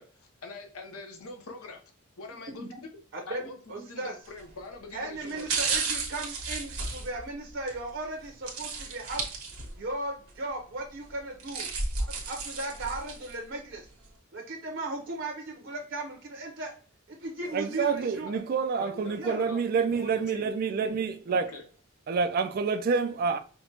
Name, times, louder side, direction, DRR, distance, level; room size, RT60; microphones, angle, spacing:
voice 1, 0.0-1.8 2.2-2.7 3.3-5.5 18.3-18.4 18.8-20.5 20.8-20.9 21.3-21.6, left 3 dB, 90° left, 0.9 m, -44 dB
voice 2, 2.5-2.8 3.1-4.1 4.9-9.3 9.7-11.7 12.1-13.8 14.3-16.7 17.1-18.3 19.2-19.4, right 2 dB, 60° right, 0.7 m, -37 dB
sound 1, 4.3-4.5 5.2-7.8 8.5-9.9 10.3-10.4 11.2-13.4 13.8-13.9, right 4 dB, 90° right, 1.1 m, -33 dB
voice 3, 17.5-21.5 22.1-23.4, right 5 dB, 45° right, 0.3 m, -28 dB
5.6 x 2.1 x 2.8 m
head